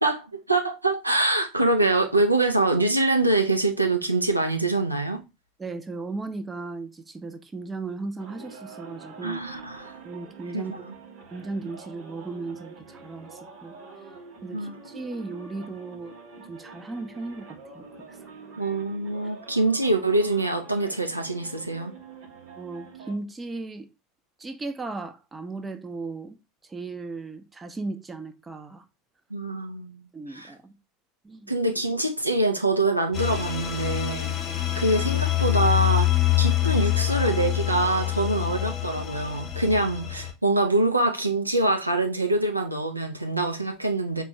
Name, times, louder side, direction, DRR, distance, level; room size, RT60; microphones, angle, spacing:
voice 1, 0.0-5.2 9.2-9.9 10.5-10.8 14.5-14.8 18.6-21.9 29.3-30.5 31.5-34.3 34.8-36.1 36.4-44.2, right 2 dB, 90° right, 0.4 m, -24 dB
voice 2, 5.6-9.4 10.0-10.9 11.3-13.8 14.4-17.5 17.7-18.3 19.2-19.3 22.6-23.9 24.4-26.4 26.7-28.8 30.1-30.8 31.2-31.5 34.5-34.6, right 3 dB, 15° right, 0.5 m, -36 dB
sound 1, 8.2-23.2, right 4 dB, 55° right, 0.9 m, -46 dB
sound 2, 33.1-40.3, left 15 dB, 35° left, 0.7 m, -25 dB
4.3 x 2.2 x 2.9 m
figure-of-eight pair, 75°, 0 cm